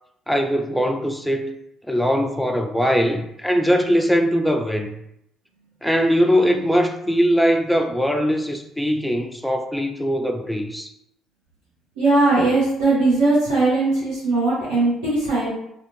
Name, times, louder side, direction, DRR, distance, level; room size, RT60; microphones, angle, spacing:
voice 1, 0.3-1.6 1.9-4.9 5.8-10.9, equal, ahead, 0.4 m, -21 dB
voice 2, 12.0-15.5, right 2 dB, 90° right, 1.0 m, -19 dB
2.5 x 2.4 x 3.0 m
hypercardioid pair, 60°, 0 cm